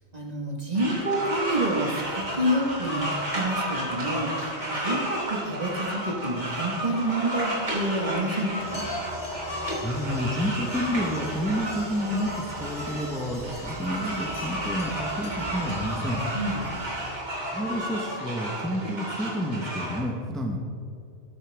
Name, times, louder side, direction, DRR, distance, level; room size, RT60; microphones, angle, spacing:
voice 1, 0.1-8.8 16.3-16.7, right 1 dB, 35° right, 0 dB, 1.8 m, -28 dB
sound 1, 0.7-20.0, right 1 dB, 90° right, 3.8 m, -32 dB
sound 2, 8.6-17.2, equal, 30° left, 3.4 m, -40 dB
voice 2, 9.7-16.2 17.5-20.6, equal, ahead, 1 dB, 1.1 m, -30 dB
13.0 x 13.0 x 3.5 m, 2.5 s
omnidirectional pair, 1.2 m